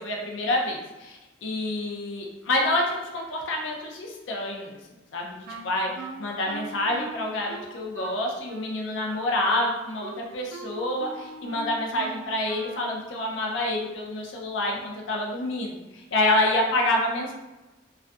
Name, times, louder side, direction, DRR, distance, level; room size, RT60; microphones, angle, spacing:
voice 1, 0.0-4.8 5.1-5.9 6.2-17.3, left 1 dB, 75° left, 0 dB, 0.4 m, -27 dB
Wind instrument woodwind instrument, 5.5-13.0, right 3 dB, 70° right, 0.4 m, -40 dB
2.5 x 2.4 x 2.2 m, 1.1 s
head